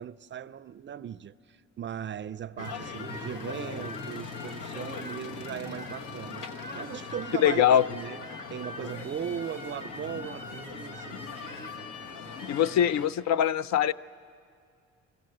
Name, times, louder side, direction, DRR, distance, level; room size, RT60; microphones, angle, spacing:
voice 1, 0.0-6.5 6.7-7.6 7.9-8.2 8.5-11.2, right 9 dB, 40° right, 0.4 m, -38 dB
sound 1, 2.6-13.1, left 4 dB, 90° left, 1.3 m, -40 dB
voice 2, 7.4-7.8 12.5-13.9, left 10 dB, 65° left, 0.5 m, -22 dB
22.5 x 15.5 x 7.8 m
cardioid pair, 90°, 30 cm